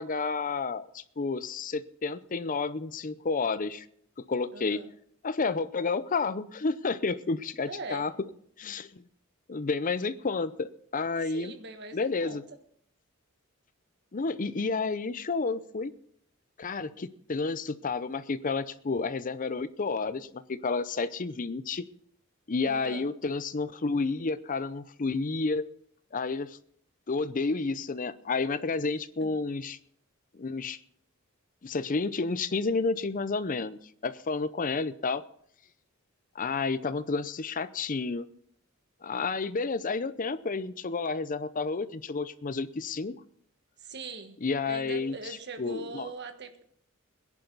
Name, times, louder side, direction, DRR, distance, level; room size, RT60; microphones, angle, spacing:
voice 1, 0.0-3.8 4.3-4.8 5.2-8.1 8.6-9.1 9.5-11.5 11.9-12.4 14.1-15.9 16.6-21.8 22.5-25.6 26.1-26.6 27.1-29.8 30.3-30.8 31.6-35.2 36.4-38.3 39.0-43.1 44.4-45.1 45.6-46.1, left 4 dB, 40° left, 15 dB, 0.6 m, -30 dB
voice 2, 4.5-4.9 7.6-8.1 11.2-12.4 22.6-23.1 29.2-29.4 43.8-44.4 44.7-46.6, right 3 dB, 55° right, 7 dB, 1.4 m, -41 dB
21.0 x 10.5 x 4.0 m, 0.66 s
head